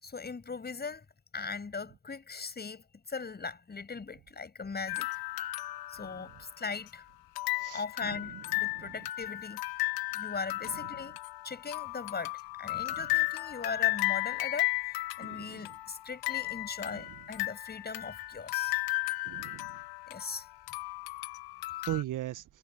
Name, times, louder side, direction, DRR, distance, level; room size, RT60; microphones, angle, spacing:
voice 1, 0.0-1.1 1.3-5.1 5.9-7.1 7.7-9.6 10.1-11.2 11.4-18.8 20.1-20.5, left 4 dB, 20° left, 7.2 m, -39 dB
sound 1, 4.9-6.9 7.4-22.0, left 21 dB, 50° left, 3.6 m, -35 dB
voice 2, 7.6-8.2 8.8-8.9 15.2-15.7 16.9-17.2 19.2-19.8 21.9-22.4, right 14 dB, 40° right, 1.9 m, -39 dB
figure-of-eight pair, 65°, 47 cm